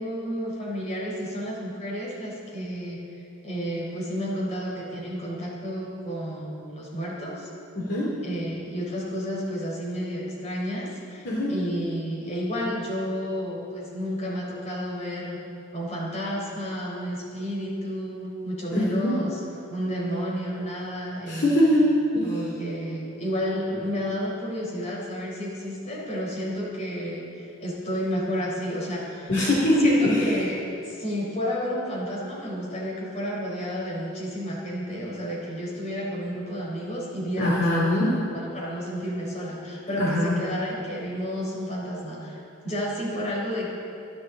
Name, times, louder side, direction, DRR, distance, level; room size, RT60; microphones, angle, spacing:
voice 1, 0.0-7.5 8.2-15.4 15.7-19.4 19.7-21.6 22.2-29.3 29.8-30.6 30.8-43.7, equal, 35° left, -4 dB, 3.9 m, -31 dB
voice 2, 7.7-8.1 11.2-11.5 18.7-19.2 21.3-22.3 29.3-30.3 37.4-38.1 40.0-40.4, left 1 dB, 55° left, -6 dB, 2.5 m, -22 dB
25.5 x 10.5 x 3.9 m, 2.7 s
head